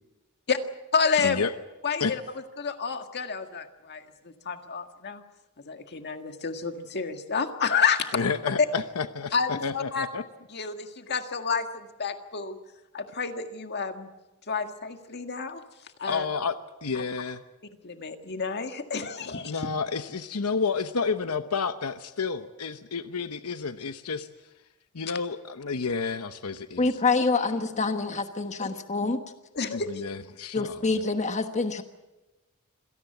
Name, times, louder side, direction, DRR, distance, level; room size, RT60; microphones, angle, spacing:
voice 1, 0.9-1.5 1.8-2.2 2.6-5.2 5.6-8.3 9.3-10.1 10.5-12.6 12.9-14.1 14.5-16.3 16.9-17.0 17.8-19.7 28.6-28.7 29.5-30.0, left 5 dB, 50° left, 6 dB, 1.8 m, -30 dB
voice 2, 8.1-10.2 16.1-17.4 19.4-24.3 24.9-26.9 29.7-30.8, left 5 dB, 80° left, 10 dB, 0.9 m, -30 dB
voice 3, 26.8-29.2 30.5-31.8, left 3 dB, 30° left, 8 dB, 1.3 m, -26 dB
26.5 x 17.5 x 8.0 m, 1.1 s
head